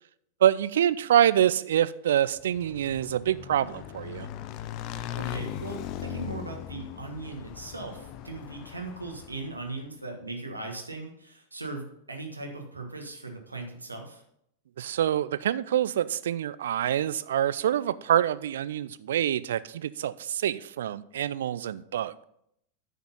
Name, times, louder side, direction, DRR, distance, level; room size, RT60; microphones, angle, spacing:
voice 1, 0.4-4.3 14.8-22.2, right 10 dB, 60° right, 17 dB, 0.4 m, -26 dB
Motorcycle / Engine, 2.3-9.7, left 11 dB, 40° left, 0.6 m, -39 dB
voice 2, 5.2-14.2, right 2 dB, 80° right, 3 dB, 1.5 m, -38 dB
9.5 x 6.0 x 5.5 m, 0.74 s
figure-of-eight pair, 90°, 0 cm